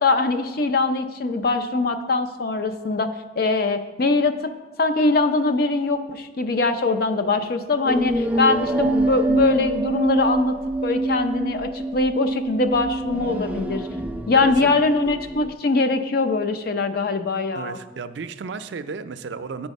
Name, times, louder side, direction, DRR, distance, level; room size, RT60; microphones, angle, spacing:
voice 1, 0.0-3.1 3.4-4.3 4.8-10.5 10.8-13.8 14.3-17.8, left 3 dB, 60° left, 8 dB, 0.5 m, -22 dB
sound 1, 7.8-15.5, right 2 dB, 10° right, 0.3 m, -25 dB
voice 2, 14.3-14.7 17.5-19.7, right 5 dB, 80° right, 11 dB, 0.4 m, -33 dB
9.0 x 4.6 x 5.3 m, 1.3 s
head